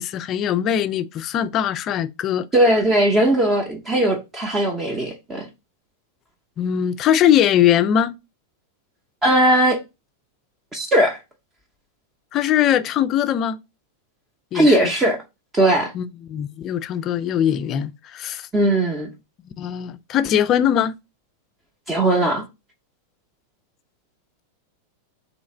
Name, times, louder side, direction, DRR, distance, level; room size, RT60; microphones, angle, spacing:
voice 1, 0.0-2.5 6.6-8.2 12.3-13.6 14.5-14.9 15.9-18.5 19.4-21.0, left 10 dB, 35° left, 0.3 m, -21 dB
voice 2, 2.5-5.5 9.2-9.8 10.7-11.2 14.5-15.2 15.5-15.9 18.5-19.1 21.9-22.4, right 1 dB, 15° right, 0.7 m, -18 dB
3.1 x 2.8 x 4.1 m
figure-of-eight pair, 90°, 0 cm